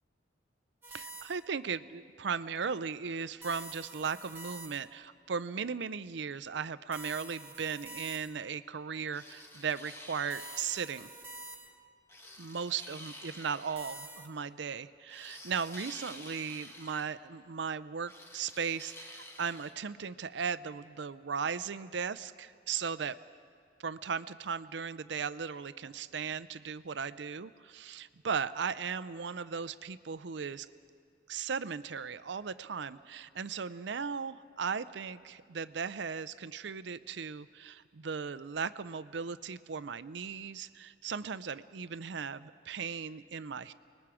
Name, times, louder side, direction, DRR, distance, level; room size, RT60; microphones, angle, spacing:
sound 1, 0.8-1.6 3.4-5.1 6.9-8.6 10.3-12.0 13.8-14.3, right 2 dB, 10° right, 1.4 m, -47 dB
voice 1, 0.9-11.1 12.4-23.2 23.8-30.7 31.3-43.7, right 6 dB, 65° right, 14 dB, 0.5 m, -37 dB
sound 2, 9.1-10.8 12.1-13.9 15.1-17.1 18.1-19.7, left 1 dB, 15° left, 1.4 m, -50 dB
29.0 x 20.0 x 4.9 m, 2.1 s
head